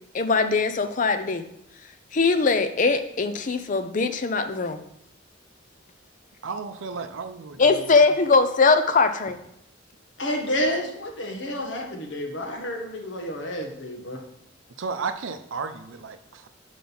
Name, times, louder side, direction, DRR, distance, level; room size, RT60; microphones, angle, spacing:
voice 1, 0.1-1.4 2.1-4.8 7.6-9.4, left 4 dB, 40° left, 9 dB, 0.5 m, -21 dB
voice 2, 6.4-7.8 14.8-16.5, right 4 dB, 80° right, 9 dB, 0.6 m, -33 dB
voice 3, 10.2-14.2, equal, 65° left, 1 dB, 1.3 m, -30 dB
6.1 x 5.0 x 5.5 m, 0.77 s
head